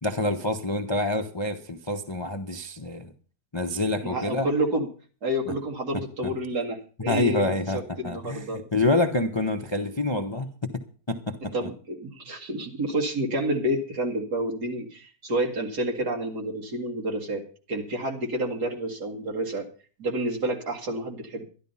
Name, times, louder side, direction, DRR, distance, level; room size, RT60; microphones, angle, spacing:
voice 1, 0.0-3.1 3.5-4.5 5.5-5.6 6.2-6.3 7.1-7.8 8.0-10.5 11.1-11.7, left 2 dB, 25° left, 5 dB, 0.7 m, -27 dB
voice 2, 4.0-4.9 5.2-8.6 11.5-17.4 17.7-19.7 20.0-21.4, right 1 dB, 60° right, 1 dB, 2.7 m, -29 dB
12.0 x 11.5 x 5.6 m, 0.40 s
omnidirectional pair, 2.0 m